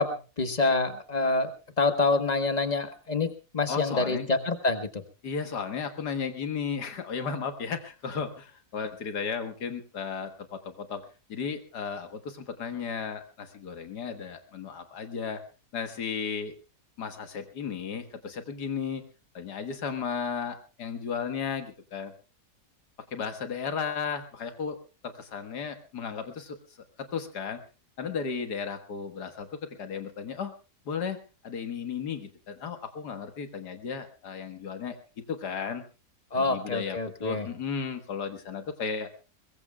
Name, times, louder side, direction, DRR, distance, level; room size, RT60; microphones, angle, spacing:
voice 1, 0.0-1.5 1.8-5.0 36.3-37.4, left 3 dB, 25° left, 8 dB, 1.4 m, -26 dB
voice 2, 3.7-4.3 5.2-11.0 11.3-15.4 15.7-16.5 17.0-19.0 19.3-22.1 23.1-24.8 25.0-26.6 27.0-27.6 28.0-30.5 30.9-35.8 36.4-39.1, left 6 dB, 90° left, 8 dB, 2.2 m, -34 dB
22.5 x 21.0 x 2.3 m, 0.33 s
omnidirectional pair, 1.7 m